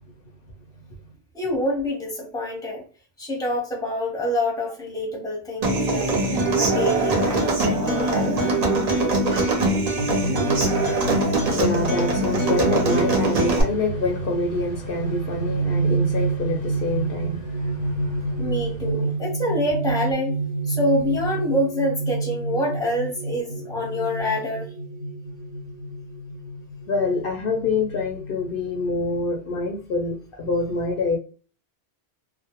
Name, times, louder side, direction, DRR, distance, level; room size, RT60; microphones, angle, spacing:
voice 1, 1.3-2.8 3.2-6.2 6.6-8.4 18.4-20.4 20.7-24.7, left 1 dB, 5° left, 0.7 m, -26 dB
Human voice / Acoustic guitar, 5.6-13.6, right 2 dB, 45° right, 0.6 m, -22 dB
sound 1, 10.0-29.2, right 3 dB, 85° right, 0.9 m, -29 dB
voice 2, 10.4-18.6 26.9-31.2, left 3 dB, 65° left, 0.7 m, -27 dB
2.1 x 2.1 x 2.9 m
omnidirectional pair, 1.1 m